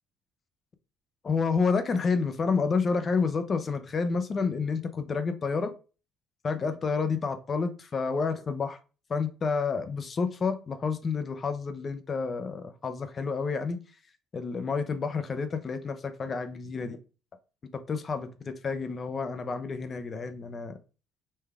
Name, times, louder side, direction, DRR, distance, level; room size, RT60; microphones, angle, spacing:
voice 1, 1.2-5.7 6.4-8.8 9.1-13.8 14.3-17.0 17.7-20.8, left 5 dB, 25° left, 9 dB, 0.5 m, -29 dB
5.4 x 2.3 x 3.3 m, 0.33 s
cardioid pair, 160°, 0 cm